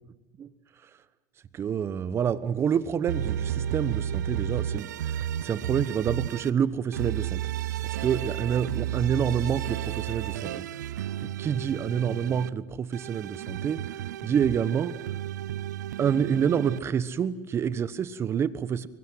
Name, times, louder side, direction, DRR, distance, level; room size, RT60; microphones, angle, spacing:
voice 1, 1.5-7.4 7.8-10.7 11.2-15.0 16.0-18.9, right 8 dB, 30° right, 16 dB, 1.2 m, -28 dB
sound 1, 3.1-6.5 6.9-12.5 12.9-16.8, right 11 dB, 90° right, 0.7 m, -32 dB
23.5 x 23.0 x 7.8 m, 1.1 s
supercardioid pair, 125°, 9 cm